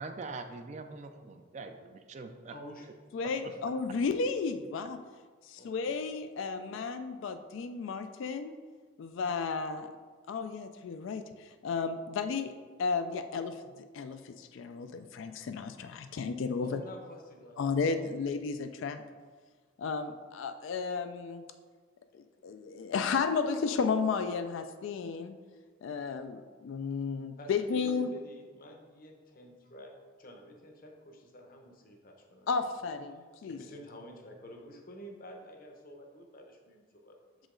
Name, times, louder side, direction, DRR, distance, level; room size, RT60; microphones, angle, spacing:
voice 1, 0.0-2.6, right 3 dB, 35° right, 7 dB, 0.3 m, -43 dB
voice 2, 2.5-2.9 3.4-3.6 5.6-6.1 16.6-17.9 18.4-19.0 27.4-32.5 33.4-37.5, equal, 45° left, 3 dB, 0.8 m, -50 dB
voice 3, 3.1-5.0 5.4-8.6 9.0-9.9 10.3-12.5 12.8-16.8 17.6-19.0 19.8-21.4 22.1-25.3 25.8-28.1 32.5-33.6, left 5 dB, 70° left, 8 dB, 0.3 m, -33 dB
6.3 x 5.0 x 3.7 m, 1.5 s
head